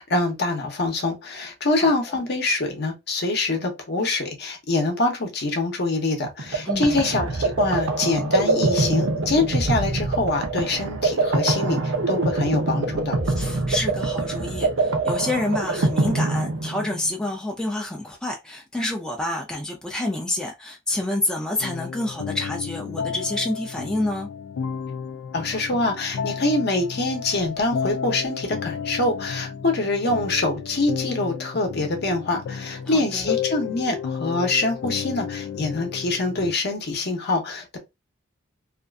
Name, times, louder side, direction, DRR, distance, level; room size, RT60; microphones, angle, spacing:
voice 1, 0.0-13.2 25.3-37.8, left 2 dB, 55° left, 0.7 m, -25 dB
sound 1, 6.2-17.1, right 3 dB, 80° right, 0.6 m, -24 dB
voice 2, 6.6-7.0 13.3-24.3 32.9-33.3, left 1 dB, 5° left, 0.4 m, -28 dB
sound 2, 21.6-36.5, left 7 dB, 90° left, 0.3 m, -32 dB
2.5 x 2.4 x 2.2 m
head